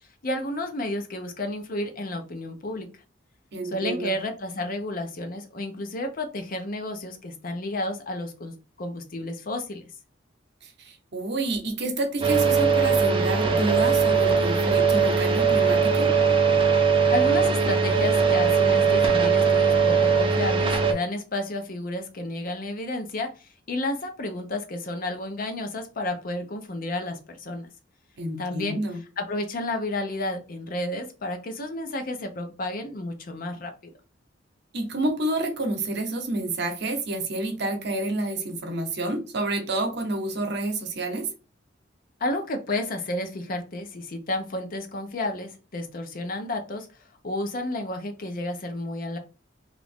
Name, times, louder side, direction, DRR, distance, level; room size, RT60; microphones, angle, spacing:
voice 1, 0.2-2.9 3.7-9.9 17.1-27.7 28.4-28.8 29.2-33.7 42.2-46.9 47.2-49.2, left 1 dB, 50° left, 0.6 m, -31 dB
voice 2, 3.5-4.2 10.6-16.1 28.2-29.0 34.7-41.3, right 2 dB, 65° right, 0.8 m, -29 dB
sound 1, 12.2-20.9, right 5 dB, 30° right, 0.6 m, -20 dB
3.0 x 2.5 x 3.4 m
head